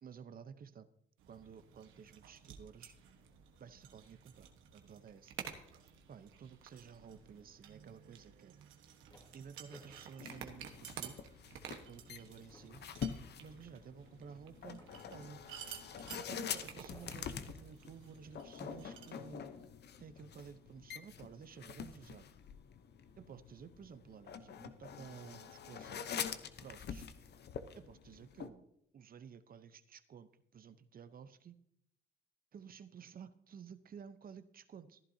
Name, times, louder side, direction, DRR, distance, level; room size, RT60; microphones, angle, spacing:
voice 1, 0.0-0.9 1.3-3.0 3.6-5.3 6.1-8.6 9.3-11.2 11.9-12.8 13.4-14.8 15.1-15.4 16.3-19.5 20.0-22.2 23.2-26.0 26.6-27.1 27.7-28.6 28.9-31.6 32.5-35.0, right 7 dB, 45° right, 12 dB, 0.8 m, -53 dB
sound 1, 1.2-19.1, right 8 dB, 90° right, 1.3 m, -53 dB
sound 2, 8.6-11.2 11.7-11.8 12.2-15.7 16.9-17.7 18.6-18.7 19.4-19.9, left 1 dB, 25° left, 2.2 m, -64 dB
sound 3, 10.2-28.5, left 7 dB, 55° left, 0.8 m, -46 dB
15.0 x 11.0 x 2.8 m, 0.77 s
cardioid pair, 90°, 20 cm